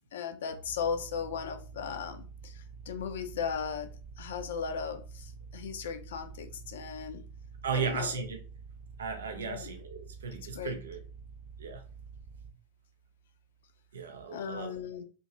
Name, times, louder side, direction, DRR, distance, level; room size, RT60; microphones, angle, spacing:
voice 1, 0.1-7.2 7.7-8.1 9.4-9.7 10.5-10.8 14.3-15.0, left 6 dB, 60° left, 0.5 m, -37 dB
sound 1, 0.6-12.5, right 5 dB, 30° right, 0.7 m, -48 dB
voice 2, 7.6-8.4 9.0-11.0 11.6-11.8 13.9-14.8, right 6 dB, 65° right, 0.6 m, -35 dB
2.9 x 2.6 x 3.7 m
figure-of-eight pair, 90°, 0 cm